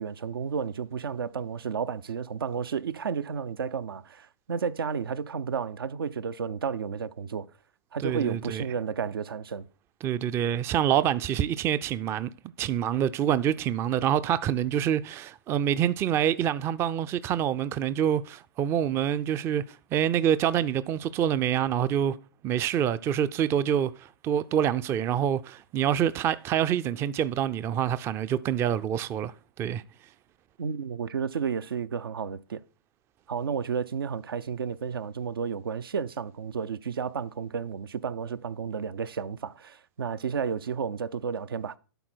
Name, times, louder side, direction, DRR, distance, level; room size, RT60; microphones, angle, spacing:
voice 1, 0.0-7.5 7.9-9.7 30.6-32.6 33.3-41.8, right 6 dB, 80° right, 0.5 m, -32 dB
voice 2, 8.0-8.6 10.0-12.3 12.6-22.2 22.4-29.8, right 9 dB, 20° right, 0.4 m, -26 dB
11.5 x 4.4 x 4.5 m
hypercardioid pair, 120°, 12 cm